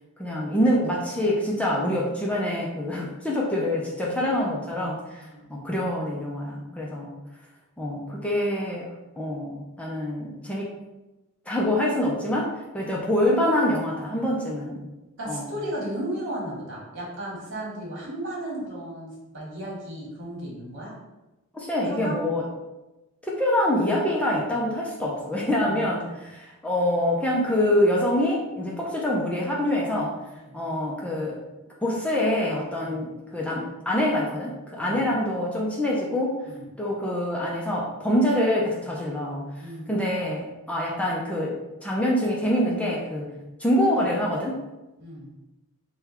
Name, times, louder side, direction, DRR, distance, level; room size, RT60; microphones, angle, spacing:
voice 1, 0.2-5.2 5.5-7.1 7.8-8.9 9.2-10.7 11.5-14.8 15.3-15.4 21.5-22.4 23.2-30.2 30.5-31.4 31.8-36.3 36.8-39.4 39.9-43.3 43.6-44.6, left 1 dB, 5° left, -4 dB, 0.5 m, -25 dB
voice 2, 5.2-5.5 15.2-20.9 21.9-22.3 25.6-26.1 30.3-30.6 32.8-33.0 34.8-35.0 36.4-36.7 39.6-40.0 43.2-43.4 45.0-45.3, right 1 dB, 60° right, -5 dB, 1.5 m, -35 dB
3.7 x 2.3 x 4.2 m, 1.0 s
head